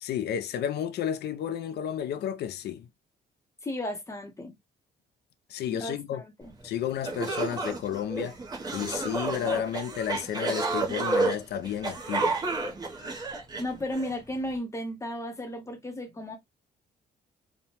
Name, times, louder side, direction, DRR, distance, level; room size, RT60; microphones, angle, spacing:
voice 1, 0.0-2.9 5.5-6.2 6.6-8.4 8.7-12.4, left 9 dB, 70° left, 0.4 m, -32 dB
voice 2, 3.6-4.5 5.7-6.5 13.6-16.4, left 1 dB, 15° left, 0.7 m, -34 dB
sound 1, 6.6-6.7 7.0-14.1, right 3 dB, 20° right, 0.6 m, -30 dB
2.9 x 2.1 x 2.8 m
cardioid pair, 145°, 18 cm